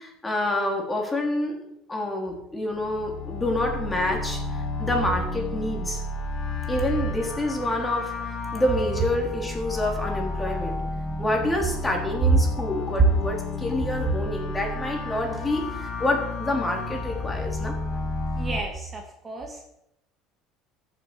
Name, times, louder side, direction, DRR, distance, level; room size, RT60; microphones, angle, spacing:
voice 1, 0.0-1.6 1.9-6.0 6.7-8.1 8.5-10.8 11.2-17.8, left 1 dB, 15° left, 1 dB, 3.8 m, -27 dB
sound 1, 2.7-18.6, left 2 dB, 40° left, 2.7 m, -32 dB
voice 2, 18.4-19.6, right 4 dB, 25° right, 2 dB, 2.5 m, -27 dB
13.5 x 7.6 x 6.2 m, 0.82 s
supercardioid pair, 95°, 0 cm